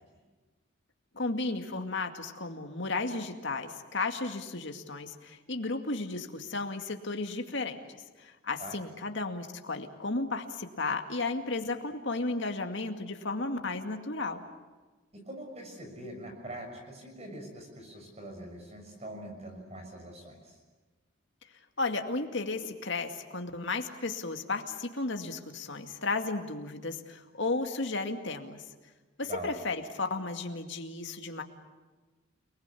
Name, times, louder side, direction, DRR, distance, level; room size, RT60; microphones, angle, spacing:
voice 1, 1.1-7.8 8.2-14.4 21.8-28.6 29.2-31.4, left 3 dB, 60° left, 5 dB, 2.3 m, -34 dB
voice 2, 15.1-20.5 29.2-29.5, right 1 dB, 30° right, 4 dB, 6.5 m, -43 dB
30.0 x 20.0 x 8.5 m, 1.3 s
head